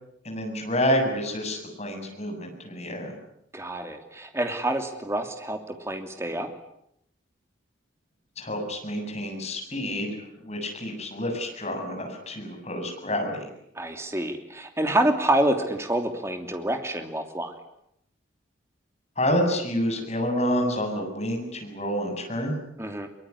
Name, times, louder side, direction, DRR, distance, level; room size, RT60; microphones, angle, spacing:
voice 1, 0.2-3.1 8.4-10.1 10.4-13.5 19.2-22.6, equal, 35° left, 3 dB, 7.6 m, -28 dB
voice 2, 3.5-6.5 13.8-17.5 22.8-23.1, right 1 dB, 15° right, 5 dB, 3.0 m, -27 dB
24.0 x 23.5 x 9.9 m, 0.77 s
head